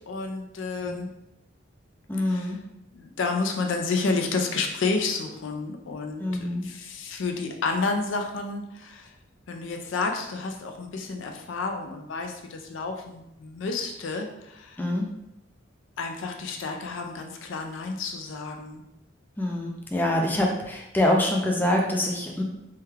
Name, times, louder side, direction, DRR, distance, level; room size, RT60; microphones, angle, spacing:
voice 1, 0.1-1.1 2.3-2.5 2.9-9.1 9.5-14.8 16.0-18.8, left 3 dB, 70° left, 3 dB, 0.4 m, -30 dB
voice 2, 2.1-2.6 6.2-6.7 14.8-15.1 19.4-22.4, left 1 dB, 10° left, -1 dB, 0.4 m, -25 dB
3.4 x 2.2 x 3.2 m, 0.85 s
head